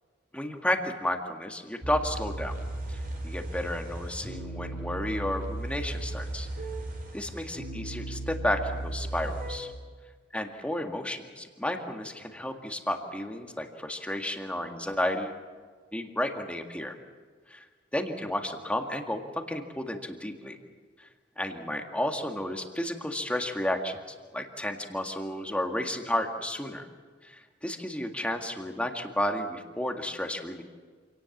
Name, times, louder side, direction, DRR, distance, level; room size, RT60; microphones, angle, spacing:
voice 1, 0.3-2.6 2.9-3.0 3.2-6.5 7.1-9.7 10.3-15.4 15.9-16.9 17.5-17.6 17.9-20.6 21.4-24.0 24.3-26.9 27.2-30.6, left 1 dB, 5° left, 4 dB, 1.9 m, -32 dB
sound 1, 1.8-9.6, right 1 dB, 50° right, 4.6 m, -36 dB
27.0 x 18.5 x 7.3 m, 1.5 s
head